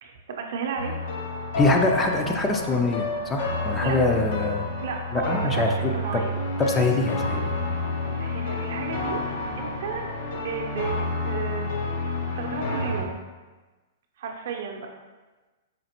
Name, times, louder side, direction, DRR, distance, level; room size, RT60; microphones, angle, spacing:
voice 1, 0.0-0.9 3.8-4.0 4.8-6.3 8.0-9.2 9.6-10.0 10.3-11.0 11.2-11.7 12.4-13.1 14.2-14.9, right 6 dB, 65° right, 2 dB, 0.5 m, -33 dB
sound 1, 0.8-13.0, left 2 dB, 65° left, 0.7 m, -29 dB
voice 2, 1.6-4.7 5.1-6.2 6.7-7.5, left 2 dB, 15° left, 3 dB, 0.4 m, -24 dB
5.0 x 2.5 x 2.8 m, 1.2 s
hypercardioid pair, 130°, 0 cm